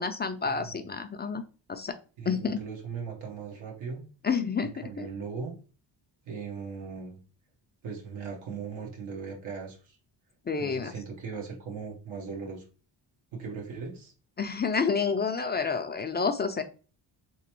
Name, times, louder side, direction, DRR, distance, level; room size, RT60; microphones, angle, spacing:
voice 1, 0.0-1.4 1.7-1.9 2.3-2.6 4.2-5.1 10.5-10.9 14.4-16.6, left 5 dB, 25° left, 8 dB, 0.3 m, -29 dB
voice 2, 2.2-4.0 4.6-5.5 6.3-7.2 7.8-10.0 10.6-12.6 13.3-14.1, right 5 dB, 80° right, -1 dB, 1.1 m, -38 dB
3.3 x 3.0 x 2.9 m, 0.36 s
cardioid pair, 70°, 46 cm